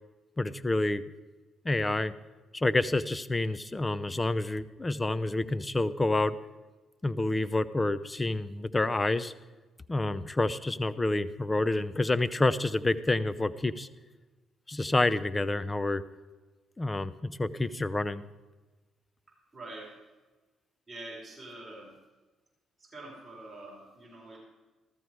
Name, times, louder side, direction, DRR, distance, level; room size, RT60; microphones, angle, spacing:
voice 1, 0.4-1.0 1.6-2.1 2.5-6.4 7.0-9.3 9.9-13.9 14.7-16.0 16.8-18.2, left 2 dB, 20° left, 15 dB, 0.6 m, -28 dB
voice 2, 19.5-19.9 20.9-21.9 22.8-24.4, right 2 dB, 15° right, -5 dB, 4.9 m, -45 dB
14.0 x 13.5 x 4.7 m, 1.2 s
cardioid pair, 90°, 0 cm